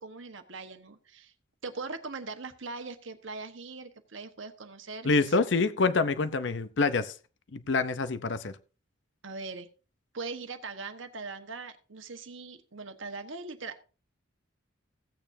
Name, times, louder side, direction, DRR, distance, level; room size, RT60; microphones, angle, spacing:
voice 1, 0.0-1.3 1.6-5.4 9.2-9.7 10.1-13.8, right 4 dB, 75° right, 1.2 m, -41 dB
voice 2, 5.0-7.1 7.5-8.6, left 3 dB, 65° left, 0.6 m, -26 dB
16.0 x 8.9 x 2.7 m
head